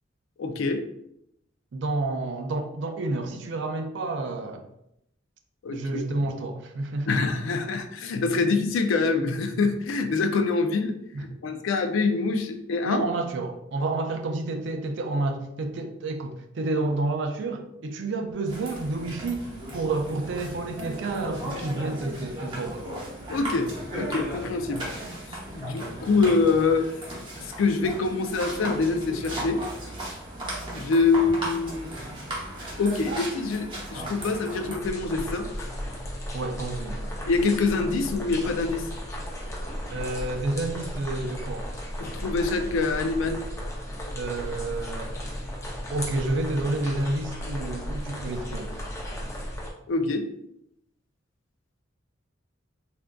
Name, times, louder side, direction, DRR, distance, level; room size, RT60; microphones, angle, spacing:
voice 1, 0.4-0.8 5.6-6.0 7.1-10.9 11.4-13.0 23.3-24.8 25.3-26.9 27.6-29.6 30.7-31.9 32.8-35.7 37.3-38.8 42.0-43.4 49.9-50.3, left 4 dB, 80° left, 7 dB, 0.4 m, -25 dB
voice 2, 1.7-4.7 5.7-7.2 8.4-8.5 11.1-11.2 12.8-19.5 19.7-22.8 36.3-37.1 39.9-41.7 44.1-45.2 45.9-48.8, right 2 dB, 65° right, 5 dB, 0.4 m, -30 dB
sound 1, 18.5-34.8, right 1 dB, 25° right, 0.8 m, -36 dB
sound 2, 34.8-49.7, equal, 15° left, 0.4 m, -35 dB
3.5 x 2.4 x 2.2 m, 0.77 s
head